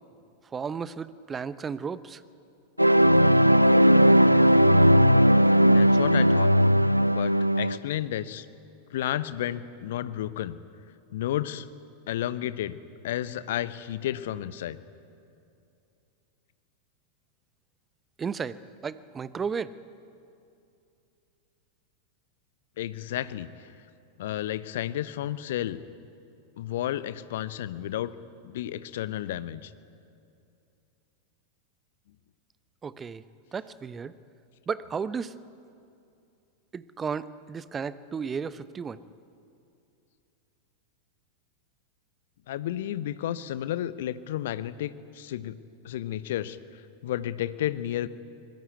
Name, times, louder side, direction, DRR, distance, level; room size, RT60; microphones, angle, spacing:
voice 1, 0.5-2.2 18.2-18.6 18.8-19.7 32.8-33.2 33.5-34.1 34.7-35.3 36.7-39.0, right 6 dB, 20° right, 17 dB, 0.8 m, -33 dB
sound 1, 2.8-7.8, equal, 90° right, 0.5 m, -18 dB
voice 2, 5.7-6.5 7.1-8.5 8.9-10.6 11.1-11.7 12.1-14.8 22.8-23.5 24.2-25.8 26.6-28.1 28.4-29.7 42.5-45.6 45.8-46.6 47.0-48.1, left 12 dB, 55° left, 15 dB, 0.9 m, -32 dB
24.0 x 20.0 x 9.4 m, 2.6 s
figure-of-eight pair, 90°, 0 cm